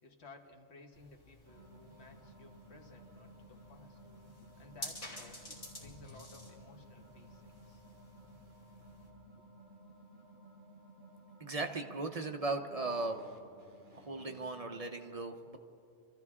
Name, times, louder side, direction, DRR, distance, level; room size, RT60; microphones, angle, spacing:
voice 1, 0.0-4.0 4.6-7.8, left 3 dB, 65° left, 3 dB, 1.5 m, -57 dB
sound 1, 0.9-9.1, left 1 dB, 45° left, 2.9 m, -51 dB
sound 2, 1.5-14.8, right 1 dB, 55° right, 1.6 m, -57 dB
voice 2, 11.4-13.3 13.9-15.6, right 3 dB, 40° right, 4 dB, 0.6 m, -37 dB
25.5 x 13.5 x 3.6 m, 2.6 s
omnidirectional pair, 1.2 m